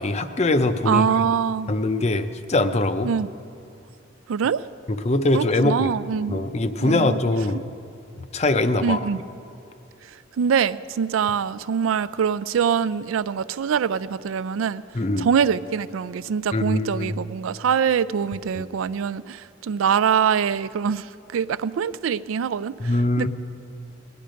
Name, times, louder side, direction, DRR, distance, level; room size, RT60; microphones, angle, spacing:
voice 1, 0.0-1.1 1.7-3.1 4.9-5.9 6.3-7.6 8.3-9.0 14.9-15.3 16.5-17.2 22.8-23.3, left 2 dB, 35° left, 0.5 m, -22 dB
voice 2, 0.9-1.7 3.0-3.3 4.3-4.6 5.3-6.4 6.8-7.2 8.8-9.2 10.4-14.8 15.2-22.9 23.2-23.3, right 7 dB, 85° right, 0.4 m, -24 dB
19.0 x 10.5 x 5.1 m
head